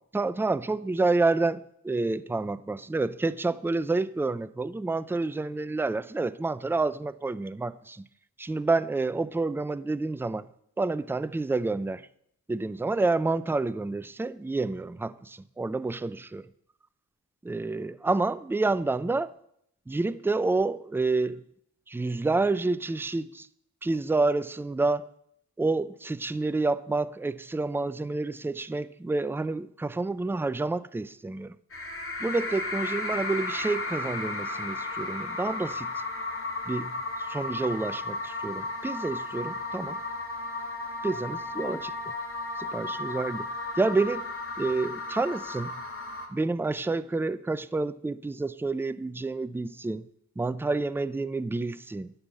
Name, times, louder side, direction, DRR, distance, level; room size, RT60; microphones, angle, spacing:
voice 1, 0.1-8.1 8.4-10.5 10.8-12.1 12.5-16.5 17.4-19.3 19.9-21.4 21.9-23.5 23.8-25.1 25.6-31.6 32.2-35.9 36.7-40.0 41.0-41.9 42.6-43.5 43.8-44.3 44.6-45.8 46.3-50.0 50.4-52.1, right 3 dB, 5° right, 0.4 m, -29 dB
sound 1, 31.7-46.3, left 2 dB, 40° left, 2.3 m, -34 dB
10.5 x 5.7 x 8.1 m
cardioid pair, 60°, 32 cm